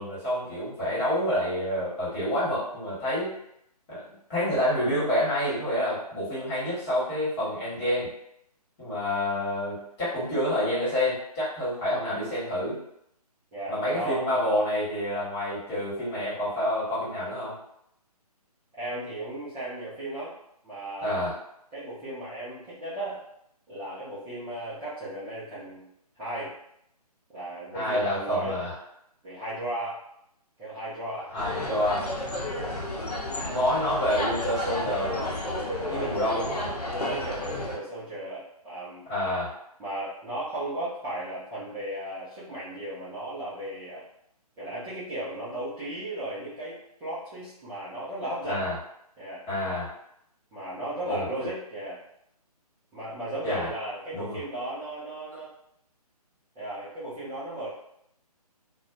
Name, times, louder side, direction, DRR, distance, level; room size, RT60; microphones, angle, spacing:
voice 1, 0.0-3.3 3.9-8.1 8.8-12.8 13.7-17.5 21.0-21.4 27.7-28.7 31.3-32.1 33.4-35.3 35.9-36.7 39.1-39.5 48.4-48.7 49.5-49.9 51.0-51.5 53.4-53.7 54.1-54.4, left 1 dB, 20° left, -10 dB, 1.3 m, -28 dB
voice 2, 13.5-14.3 18.8-20.3 20.6-21.2 21.7-23.2 23.7-25.9 26.2-26.5 27.3-28.7 29.2-30.0 30.6-31.3 32.5-32.7 35.7-36.3 36.8-39.1 39.8-44.0 44.6-48.7 49.2-49.4 50.5-52.0 52.9-55.5 56.5-57.7, right 1 dB, 10° right, -14 dB, 0.5 m, -35 dB
sound 1, 31.4-37.8, left 1 dB, 80° left, 0.8 m, -32 dB
2.5 x 2.2 x 2.4 m, 0.75 s
figure-of-eight pair, 145°, 20 cm